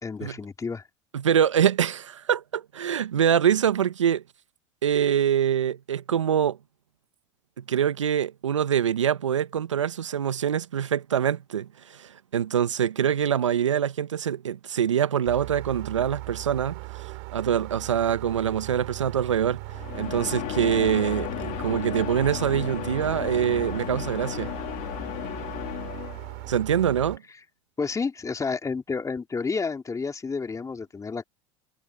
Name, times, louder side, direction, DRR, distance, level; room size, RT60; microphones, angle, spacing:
voice 1, 0.0-0.8 27.8-31.2, left 4 dB, 20° left, 3.2 m, -30 dB
voice 2, 1.1-4.2 4.8-6.6 7.7-19.6 19.9-24.5 26.5-27.2, right 9 dB, 90° right, 1.2 m, -24 dB
sound 1, 15.2-27.2, right 35 dB, 65° right, 4.1 m, -38 dB
sound 2, 19.7-26.5, left 20 dB, 60° left, 3.5 m, -34 dB
hypercardioid pair, 80°, 15 cm